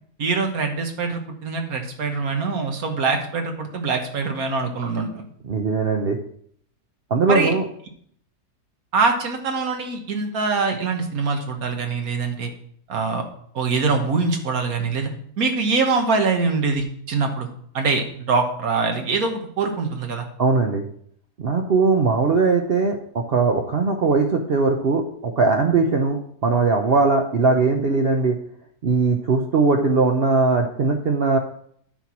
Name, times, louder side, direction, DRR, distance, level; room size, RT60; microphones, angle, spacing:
voice 1, 0.2-5.2 7.3-7.5 8.9-12.5 12.9-13.2 13.5-15.1 15.4-17.5 17.7-20.3, right 4 dB, 65° right, 4 dB, 1.7 m, -23 dB
voice 2, 5.4-6.2 7.1-7.6 20.4-20.8 21.4-28.4 28.8-31.4, right 4 dB, 50° right, 3 dB, 0.8 m, -20 dB
9.1 x 4.5 x 5.8 m, 0.64 s
omnidirectional pair, 1.7 m